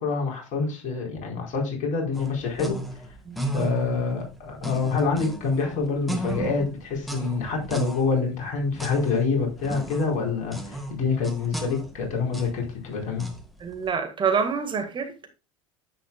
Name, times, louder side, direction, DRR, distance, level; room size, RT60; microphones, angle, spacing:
voice 1, 0.0-2.8 3.5-13.3, left 4 dB, 50° left, 4.6 m, -26 dB
sound 1, 2.1-13.8, right 1 dB, ahead, 1.9 m, -35 dB
voice 2, 3.2-3.7 13.6-15.3, right 6 dB, 30° right, 1.8 m, -27 dB
10.0 x 8.4 x 2.3 m
figure-of-eight pair, 75°, 17 cm